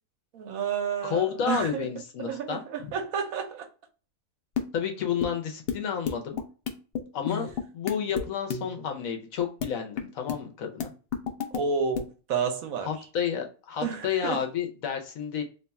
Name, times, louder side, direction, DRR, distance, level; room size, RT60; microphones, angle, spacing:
voice 1, 0.3-1.9 2.2-3.7 11.5-12.9 13.8-14.5, right 6 dB, 80° right, 1.1 m, -30 dB
voice 2, 1.0-2.9 4.7-6.4 7.1-10.9 12.8-15.4, left 8 dB, 80° left, 1.2 m, -31 dB
sound 1, 4.6-4.7 5.2-5.3 5.7-5.8 6.1-8.3 8.5-8.8 9.6-9.7 10.0-10.4 10.8-11.6 12.0-12.1, left 7 dB, 55° left, 0.7 m, -31 dB
3.0 x 2.3 x 4.0 m
omnidirectional pair, 1.4 m